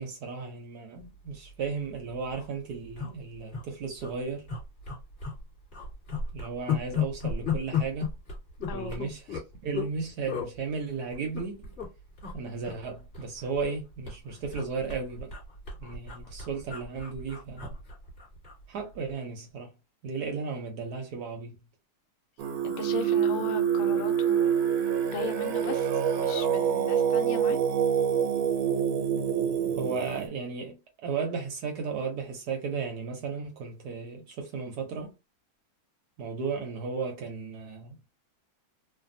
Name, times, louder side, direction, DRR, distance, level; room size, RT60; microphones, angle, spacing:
voice 1, 0.0-4.5 6.3-8.1 8.7-11.5 12.3-15.3 15.8-17.7 18.7-19.7 20.0-21.6 29.8-35.1 36.2-38.0, right 5 dB, 65° right, 1.0 m, -35 dB
sound 1, 1.5-1.7 2.0-2.1 2.2-2.5 3.0-3.6 4.0-4.1 4.5-5.4 5.7-9.9 10.3-10.5 11.1-11.9 12.2-12.4 12.6-13.8 14.1-18.6 18.9-19.1, left 6 dB, 35° left, 1.6 m, -34 dB
voice 2, 8.7-9.0 22.6-24.5 25.1-25.9 26.2-27.6, left 6 dB, 75° left, 1.4 m, -37 dB
Singing, 22.4-30.3, right 8 dB, 85° right, 1.5 m, -26 dB
3.3 x 2.2 x 2.5 m
omnidirectional pair, 2.3 m